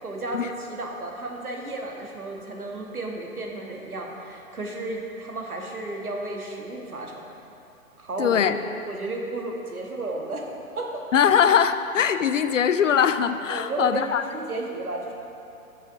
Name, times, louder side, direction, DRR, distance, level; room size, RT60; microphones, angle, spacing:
voice 1, 0.0-7.2 8.0-8.6 8.9-10.5 10.8-11.0 13.5-15.1, right 2 dB, 85° right, 0 dB, 1.4 m, -33 dB
voice 2, 8.2-8.6 11.1-14.2, left 8 dB, 60° left, 11 dB, 0.5 m, -21 dB
14.0 x 6.3 x 2.7 m, 2.6 s
figure-of-eight pair, 120°, 43 cm